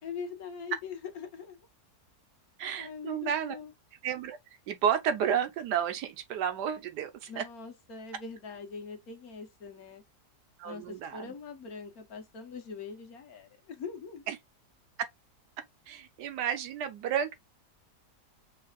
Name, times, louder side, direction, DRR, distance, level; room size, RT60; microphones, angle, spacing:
voice 1, 0.0-1.6 2.8-3.7 7.3-10.0 10.6-14.3, left 5 dB, 65° left, 1.6 m, -42 dB
voice 2, 2.6-3.5 4.0-4.4 4.7-7.4 10.6-11.3 14.3-14.4 15.9-17.3, right 8 dB, 85° right, 1.4 m, -31 dB
5.6 x 3.3 x 2.3 m
omnidirectional pair, 1.7 m